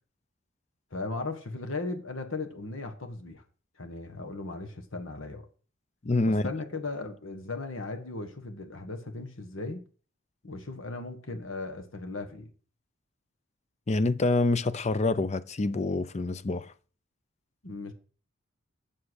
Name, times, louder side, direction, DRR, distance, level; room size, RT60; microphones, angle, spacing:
voice 1, 0.9-3.4 3.8-5.5 6.2-9.8 10.4-12.5 17.6-17.9, left 3 dB, 75° left, 1.6 m, -37 dB
voice 2, 6.0-6.4 13.9-16.7, left 2 dB, 35° left, 0.5 m, -26 dB
7.6 x 7.1 x 6.4 m
head